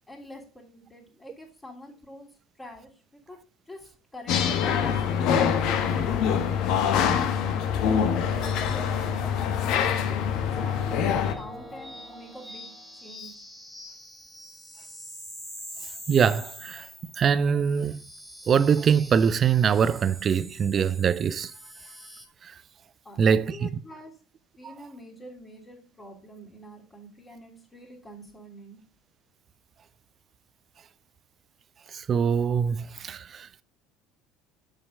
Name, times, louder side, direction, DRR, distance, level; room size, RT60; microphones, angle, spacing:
voice 1, 0.1-2.3 2.6-3.4 3.7-7.3 7.8-9.5 9.9-13.4 23.0-24.1 24.5-28.8, equal, 20° left, 3.1 m, -46 dB
sound 1, 4.3-11.3, left 8 dB, 60° left, 1.1 m, -25 dB
sound 2, 5.4-22.3, left 1 dB, ahead, 2.2 m, -43 dB
voice 2, 16.1-16.9 17.2-18.0 18.5-21.5 22.4-22.5 23.2-23.7 24.6-24.7 31.9-33.6, right 7 dB, 40° right, 0.5 m, -23 dB
6.9 x 5.4 x 5.2 m
hypercardioid pair, 70°, 0 cm